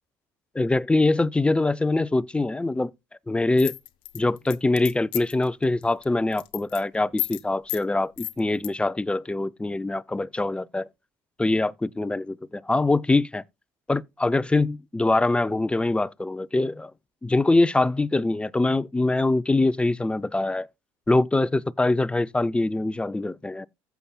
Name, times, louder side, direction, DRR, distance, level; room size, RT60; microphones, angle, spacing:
voice 1, 0.5-2.9 3.3-3.7 4.1-10.9 11.4-13.4 13.9-16.9 17.2-20.7 21.1-23.7, left 2 dB, 10° left, 0.4 m, -23 dB
sound 1, 3.6-5.4 5.8-6.0 6.3-6.8 7.2-7.4 7.7-7.8 8.2-8.7, left 19 dB, 75° left, 0.8 m, -32 dB
15.0 x 6.9 x 2.2 m
supercardioid pair, 75°, 9 cm